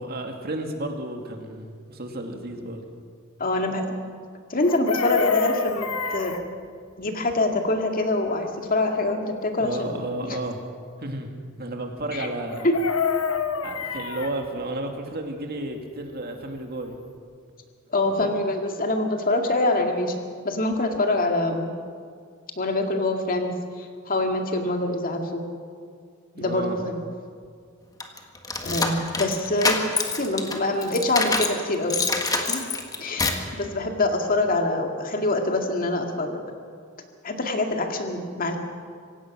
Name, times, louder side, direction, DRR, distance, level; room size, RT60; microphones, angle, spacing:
voice 1, 0.0-2.9 9.6-10.6 11.0-11.3 11.6-12.7 13.6-17.0 18.2-18.4 26.3-26.8, right 1 dB, 45° right, 3 dB, 2.3 m, -32 dB
voice 2, 3.4-4.0 4.5-6.3 7.0-9.9 12.1-12.3 12.6-12.8 17.9-20.1 20.4-21.7 22.6-25.4 26.4-27.0 28.6-29.8 30.2-32.6 33.0-36.4 37.2-38.6, left 2 dB, 40° left, 3 dB, 2.2 m, -25 dB
Chicken rooster, 4.6-6.4 12.5-14.3 16.6-16.7 16.9-17.2, left 6 dB, 85° left, 1.2 m, -27 dB
sound 1, 28.0-31.6 31.9-33.5, left 3 dB, 15° left, 1.7 m, -26 dB
26.0 x 16.5 x 6.2 m, 2.2 s
head